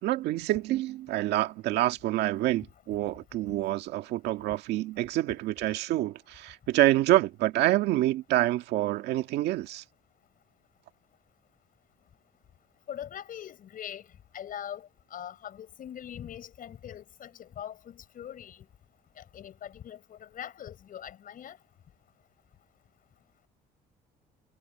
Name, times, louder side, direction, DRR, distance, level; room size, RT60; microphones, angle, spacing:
voice 1, 0.0-9.8, right 15 dB, 80° right, 1.8 m, -27 dB
voice 2, 12.9-14.1 14.3-18.7 19.2-21.6, left 10 dB, 55° left, 7.6 m, -42 dB
cardioid pair, 110°, 17 cm